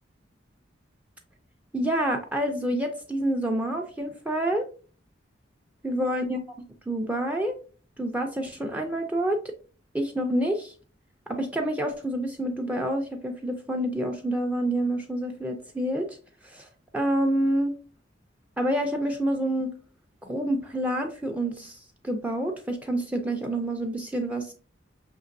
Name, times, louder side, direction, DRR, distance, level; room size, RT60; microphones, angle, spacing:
voice 1, 1.7-4.7 5.8-6.4 6.9-7.6 8.0-9.5 9.9-10.7 11.3-16.2 16.4-16.7 16.9-17.7 18.6-19.7 20.2-21.8 22.0-24.5, right 1 dB, 10° right, 3 dB, 0.4 m, -28 dB
6.1 x 2.9 x 2.6 m, 0.39 s
head